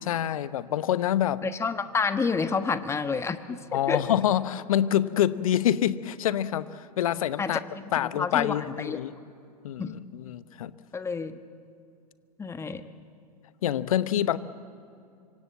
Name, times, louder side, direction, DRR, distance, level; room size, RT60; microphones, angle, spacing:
voice 1, 0.1-1.4 3.7-7.6 7.9-9.1 9.6-10.7 13.6-14.4, left 11 dB, 60° left, 15 dB, 1.0 m, -26 dB
voice 2, 1.4-4.0 7.4-7.5 8.0-9.0 9.8-9.9 10.9-11.4 12.4-12.9, left 5 dB, 15° left, 10 dB, 1.2 m, -29 dB
25.5 x 24.5 x 7.7 m, 2.5 s
figure-of-eight pair, 100°, 20 cm